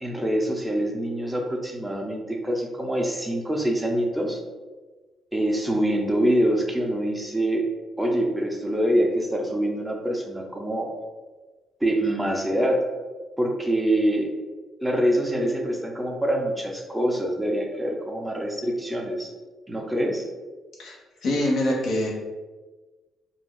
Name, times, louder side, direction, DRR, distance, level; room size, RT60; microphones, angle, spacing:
voice 1, 0.0-4.4 5.3-7.6 8.0-10.9 11.8-12.8 13.4-14.3 14.8-19.3 19.7-20.3, right 1 dB, 5° right, 0 dB, 0.6 m, -25 dB
voice 2, 21.2-22.1, left 1 dB, 70° left, -3 dB, 0.9 m, -24 dB
2.5 x 2.2 x 3.6 m, 1.3 s
cardioid pair, 90°, 0 cm